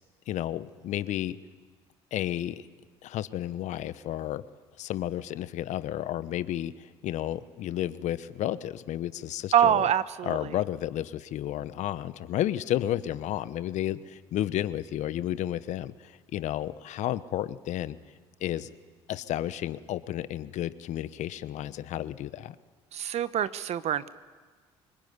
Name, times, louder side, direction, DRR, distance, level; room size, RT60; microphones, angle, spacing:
voice 1, 0.3-1.4 2.1-2.6 3.0-4.4 4.8-9.9 10.2-18.0 18.4-18.7 19.1-22.5, left 12 dB, 65° left, 15 dB, 1.1 m, -32 dB
voice 2, 9.5-10.4 22.9-24.1, right 10 dB, 55° right, 15 dB, 1.1 m, -25 dB
25.0 x 22.0 x 9.7 m, 1.4 s
hypercardioid pair, 60°, 13 cm